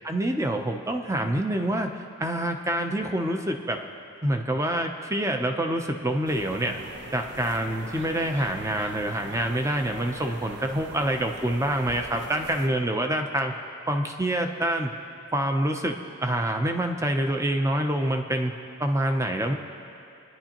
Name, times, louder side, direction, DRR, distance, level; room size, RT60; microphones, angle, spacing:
voice 1, 0.0-1.9 2.2-3.8 4.2-6.8 7.1-13.5 13.9-14.9 15.3-16.0 16.2-18.5 18.8-19.5, right 1 dB, 15° right, 4 dB, 0.6 m, -26 dB
sound 1, 6.2-12.7, right 2 dB, 50° right, 0.8 m, -41 dB
24.0 x 10.5 x 3.0 m, 2.6 s
head